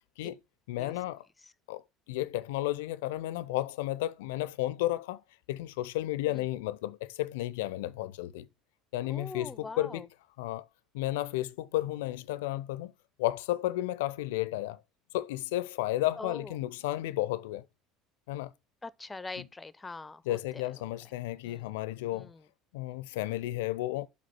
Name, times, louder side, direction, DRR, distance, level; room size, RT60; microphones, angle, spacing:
voice 1, 0.7-1.2 1.7-1.8 2.1-5.2 5.5-8.5 8.9-10.1 10.4-10.6 10.9-12.9 13.2-14.8 15.1-17.6 18.3-18.5 20.3-22.3 22.7-24.1, left 15 dB, 65° left, 0.5 m, -33 dB
voice 2, 9.0-10.1 16.2-16.6 18.8-20.8 21.4-21.8 22.1-22.5, left 3 dB, 15° left, 0.5 m, -43 dB
7.4 x 3.9 x 5.9 m
figure-of-eight pair, 65°, 0 cm